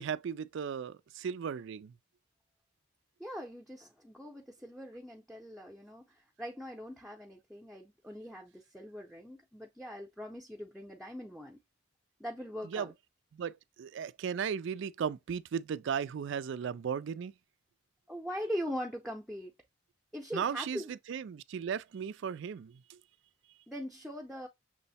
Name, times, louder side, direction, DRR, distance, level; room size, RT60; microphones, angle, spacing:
voice 1, 0.0-1.9 12.6-12.9 13.3-17.3 20.3-23.0, right 7 dB, 60° right, 0.3 m, -36 dB
voice 2, 3.2-11.6 12.2-12.9 18.1-19.5 20.1-20.9 23.7-24.5, equal, ahead, 0.6 m, -41 dB
6.2 x 2.1 x 4.1 m
head